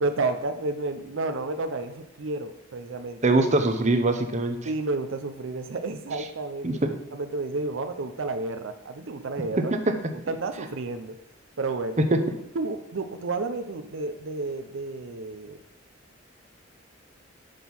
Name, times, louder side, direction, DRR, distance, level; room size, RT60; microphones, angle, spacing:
voice 1, 0.0-3.2 4.6-9.7 10.3-11.2 11.6-12.1 12.5-15.6, right 3 dB, 75° right, 8 dB, 0.6 m, -31 dB
voice 2, 3.2-4.6 6.6-6.9 12.0-12.2, right 2 dB, 35° right, 7 dB, 0.8 m, -22 dB
6.6 x 6.0 x 5.4 m, 0.80 s
head